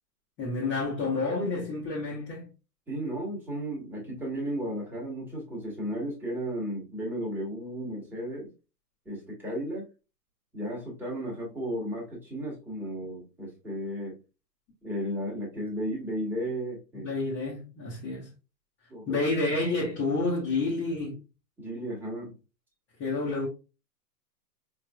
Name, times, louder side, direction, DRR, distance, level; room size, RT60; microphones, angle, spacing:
voice 1, 0.4-2.5 16.9-18.3 19.1-21.2 23.0-23.5, left 3 dB, 25° left, 1.3 m, -29 dB
voice 2, 2.9-8.5 9.0-9.9 10.5-14.2 14.8-17.1 18.9-19.2 21.6-22.4, equal, 5° right, 1.5 m, -34 dB
4.9 x 3.4 x 2.3 m
hypercardioid pair, 140°, 49 cm